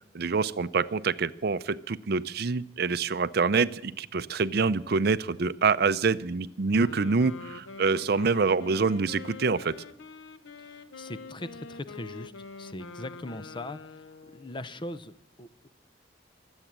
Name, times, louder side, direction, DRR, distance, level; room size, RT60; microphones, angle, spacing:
voice 1, 0.1-9.7, right 4 dB, 55° right, 15 dB, 0.5 m, -26 dB
Wind instrument woodwind instrument, 6.7-14.6, left 4 dB, 90° left, 0.8 m, -45 dB
voice 2, 10.6-12.3 12.6-14.0 14.3-15.7, left 1 dB, 25° left, 14 dB, 0.6 m, -40 dB
24.0 x 8.1 x 7.4 m, 0.80 s
head